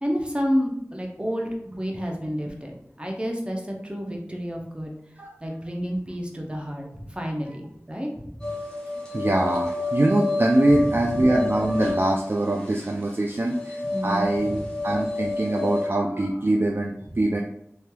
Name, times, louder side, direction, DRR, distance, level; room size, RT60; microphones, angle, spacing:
voice 1, 0.0-4.9 5.4-8.5 10.7-11.1 13.9-14.7, equal, 20° right, 0 dB, 0.7 m, -30 dB
sound 1, 8.4-15.9, left 2 dB, 15° left, 0.9 m, -29 dB
voice 2, 9.1-17.4, right 1 dB, 45° right, 0 dB, 0.3 m, -23 dB
3.1 x 2.9 x 2.2 m, 0.72 s
wide cardioid pair, 45°, 5 cm